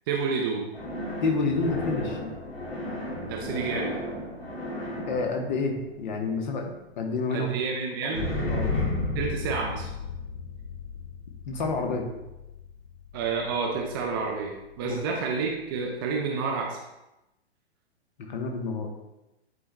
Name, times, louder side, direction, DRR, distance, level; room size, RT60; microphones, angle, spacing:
voice 1, 0.1-0.7 3.2-3.9 7.3-8.3 9.1-9.9 13.1-16.8, right 5 dB, 20° right, 0 dB, 0.5 m, -29 dB
sound 1, 0.7-6.7 8.1-13.5, left 2 dB, 65° left, 2.1 m, -34 dB
voice 2, 1.2-2.3 5.1-6.7 7.0-7.5 8.0-8.7 11.5-12.1 14.8-15.1 18.2-18.9, left 4 dB, 45° left, 2 dB, 1.1 m, -29 dB
9.7 x 4.5 x 2.2 m, 0.95 s
figure-of-eight pair, 115°, 33 cm